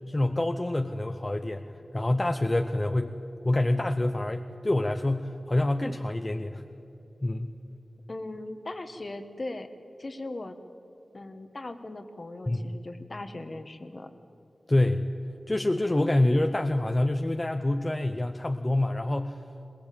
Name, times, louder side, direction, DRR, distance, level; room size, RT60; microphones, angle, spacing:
voice 1, 0.1-1.7 1.9-3.2 3.4-6.6 7.2-7.6 12.5-12.7 14.7-15.1 15.5-19.4, left 1 dB, 25° left, 6 dB, 0.8 m, -26 dB
voice 2, 8.1-9.7 10.0-10.6 11.1-14.1, left 2 dB, 45° left, 9 dB, 1.5 m, -39 dB
21.5 x 19.5 x 8.6 m, 2.9 s
wide cardioid pair, 65°, 0 cm